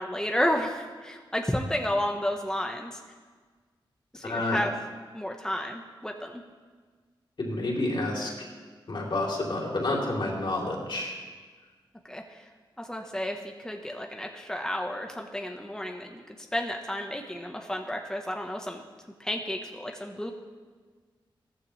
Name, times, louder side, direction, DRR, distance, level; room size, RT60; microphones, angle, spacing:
voice 1, 0.0-3.0 4.1-4.7 5.1-6.4 12.0-12.5 12.8-18.8 19.2-20.3, left 1 dB, 5° left, 2 dB, 1.3 m, -32 dB
voice 2, 4.2-4.6 7.4-8.3 8.9-11.2, left 2 dB, 60° left, -2 dB, 3.6 m, -29 dB
16.0 x 14.5 x 3.4 m, 1.5 s
cardioid pair, 55°, 9 cm